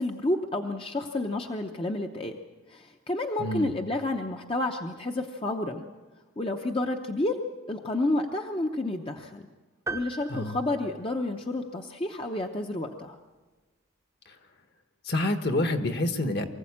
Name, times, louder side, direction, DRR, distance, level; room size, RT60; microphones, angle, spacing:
voice 1, 0.0-2.4 2.7-5.8 6.4-7.4 7.7-9.5 9.9-13.2, left 2 dB, 25° left, 4 dB, 0.8 m, -30 dB
voice 2, 3.4-3.7 10.3-10.6 15.1-16.5, left 1 dB, 50° left, 8 dB, 1.4 m, -27 dB
sound 1, 9.9-11.7, right 3 dB, 15° right, 0.7 m, -39 dB
23.5 x 15.5 x 8.6 m, 1.3 s
head